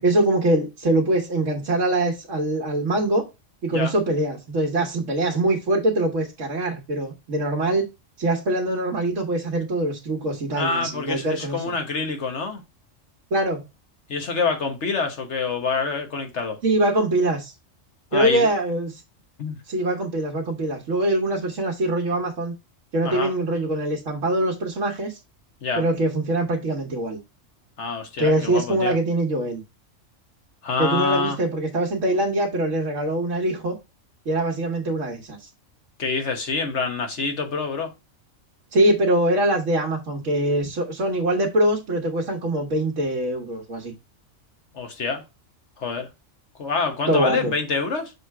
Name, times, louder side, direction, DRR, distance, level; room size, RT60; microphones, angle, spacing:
voice 1, 0.0-3.3 3.6-7.8 8.2-11.6 13.3-13.6 16.6-17.5 18.1-19.0 19.7-22.5 22.9-25.2 25.7-27.2 28.2-29.6 30.8-33.8 34.2-35.5 38.7-43.9 47.1-47.5, right 1 dB, 75° right, 1.6 m, -23 dB
voice 2, 10.5-12.6 14.1-16.6 18.1-18.5 19.4-19.6 23.0-23.3 25.6-25.8 27.8-28.9 30.6-31.4 36.0-37.9 44.7-45.2 45.8-46.1 46.6-48.1, left 4 dB, 65° left, 1.5 m, -26 dB
6.8 x 3.3 x 4.7 m
omnidirectional pair, 1.3 m